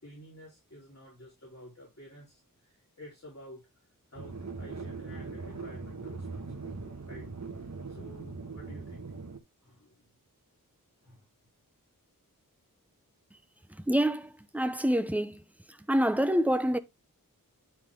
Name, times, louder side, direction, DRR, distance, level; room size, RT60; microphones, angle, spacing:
voice 1, 0.0-7.3 7.6-9.1 9.6-10.1 11.0-11.3, equal, 50° left, 4.2 m, -51 dB
sound 1, 4.1-9.4, right 4 dB, 50° right, 1.4 m, -41 dB
voice 2, 13.7-15.4 15.7-16.8, equal, 5° right, 0.8 m, -27 dB
10.0 x 4.5 x 3.7 m
wide cardioid pair, 60°, 34 cm